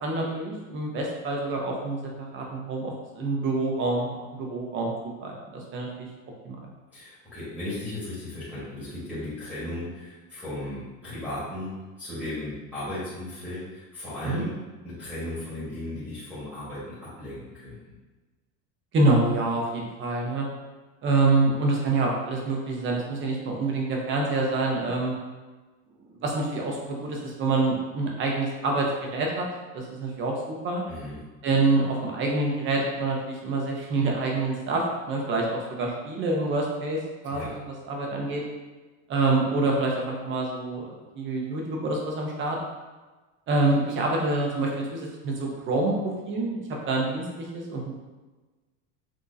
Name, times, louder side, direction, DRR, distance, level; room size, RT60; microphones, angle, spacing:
voice 1, 0.0-4.9 5.2-6.1 6.4-6.7 14.2-14.4 18.9-20.5 21.0-25.1 26.1-29.5 29.7-30.8 31.4-37.6 37.9-38.4 39.1-42.6 43.5-47.9, right 3 dB, 30° right, -1 dB, 0.8 m, -26 dB
voice 2, 6.9-14.5 14.8-17.9 30.9-31.2 37.3-37.5, left 1 dB, 5° left, -12 dB, 1.4 m, -36 dB
6.2 x 2.9 x 2.7 m, 1.2 s
cardioid pair, 165°, 38 cm